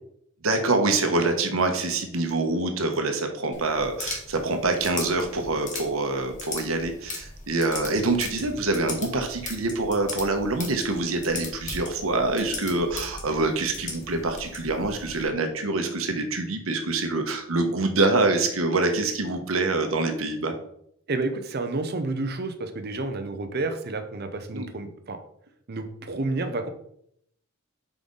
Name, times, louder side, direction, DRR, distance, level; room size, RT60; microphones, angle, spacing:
voice 1, 0.4-20.5 24.5-24.7, right 2 dB, 75° right, 5 dB, 1.0 m, -25 dB
sound 1, 3.5-15.3, left 3 dB, 35° left, 1.3 m, -39 dB
voice 2, 21.1-25.2 25.7-26.7, right 2 dB, 50° right, 8 dB, 0.7 m, -30 dB
5.5 x 4.9 x 3.9 m, 0.70 s
head